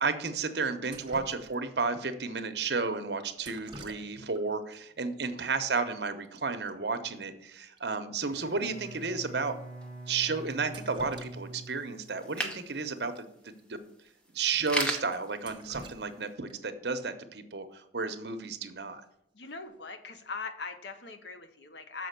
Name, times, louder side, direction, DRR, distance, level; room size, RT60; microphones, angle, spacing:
voice 1, 0.0-9.6 10.1-13.8 14.3-19.0, right 4 dB, 65° right, 9 dB, 0.9 m, -32 dB
Drip, 0.9-1.9 3.4-4.4 4.7-4.8 5.8-5.9 6.1-6.4 6.7-6.8 7.2-7.3 7.8-7.9 8.4-8.5 9.2-9.3 10.5-11.7 12.1-12.2 13.5-13.6 14.0-14.1 14.6-14.7 15.1-16.8 18.8-19.1 19.5-19.9, right 2 dB, 25° right, 0.9 m, -49 dB
Bowed string instrument, 8.2-12.5, right 2 dB, 35° left, 2.4 m, -45 dB
sound 1, 8.2-16.3, right 1 dB, 5° left, 0.9 m, -41 dB
voice 2, 19.3-22.1, left 4 dB, 75° left, 8 dB, 0.8 m, -41 dB
6.9 x 5.1 x 6.7 m, 0.76 s
head